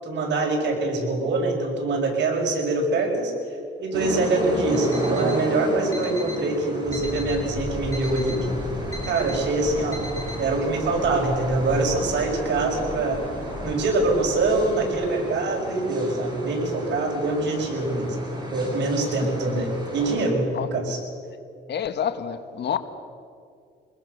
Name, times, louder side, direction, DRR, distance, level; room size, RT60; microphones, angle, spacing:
voice 1, 0.0-3.3 3.8-8.5 9.1-10.1 10.4-13.2 13.6-18.2 18.5-21.0, right 2 dB, 65° right, 0 dB, 6.3 m, -24 dB
sound 1, 3.9-20.3, right 1 dB, 20° right, 7.9 m, -33 dB
Alarm, 4.7-5.4 5.9-6.5 6.9-7.5 7.9-8.5 8.9-9.4 9.9-10.4, equal, 15° left, 2.9 m, -39 dB
sound 2, 6.8-14.9, left 1 dB, ahead, 7.8 m, -36 dB
voice 2, 21.7-22.8, left 8 dB, 60° left, 9 dB, 1.5 m, -28 dB
24.0 x 21.0 x 6.7 m, 2.3 s
cardioid pair, 90°, 20 cm